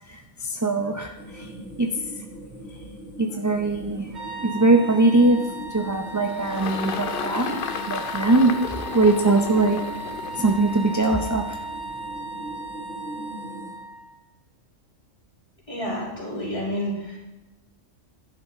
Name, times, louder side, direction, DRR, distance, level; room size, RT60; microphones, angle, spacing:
voice 1, 0.1-1.5 1.8-1.9 3.2-5.4 5.7-8.6 8.9-9.8 10.4-11.6, right 2 dB, 20° right, 4 dB, 0.4 m, -21 dB
sound 1, 1.2-13.7, right 1 dB, 90° left, 3.2 m, -42 dB
sound 2, 4.1-14.1, right 2 dB, 60° right, 2.9 m, -36 dB
Engine, 5.6-12.2, left 7 dB, 55° left, 0.7 m, -34 dB
voice 2, 15.7-17.2, equal, 25° left, -5 dB, 3.4 m, -29 dB
11.5 x 10.5 x 3.6 m, 1.1 s
omnidirectional pair, 1.3 m